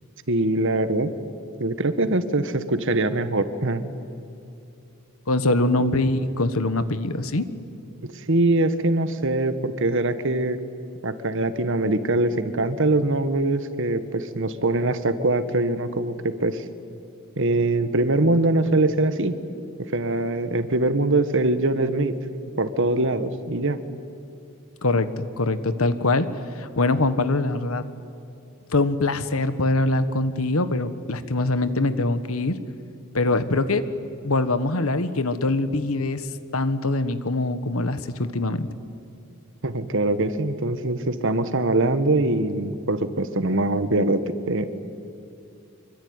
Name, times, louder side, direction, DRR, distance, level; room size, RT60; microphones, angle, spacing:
voice 1, 0.3-1.1 1.6-3.8 5.8-5.9 8.1-10.6 11.0-16.6 17.4-19.4 19.9-22.1 22.6-23.8 39.6-44.7, right 2 dB, 60° right, 11 dB, 1.5 m, -23 dB
voice 2, 5.3-7.5 24.8-26.3 26.5-27.9 28.7-32.6 33.1-33.9 34.2-36.3 36.5-38.7, left 2 dB, 70° left, 12 dB, 1.4 m, -23 dB
25.5 x 24.0 x 9.6 m, 2.7 s
head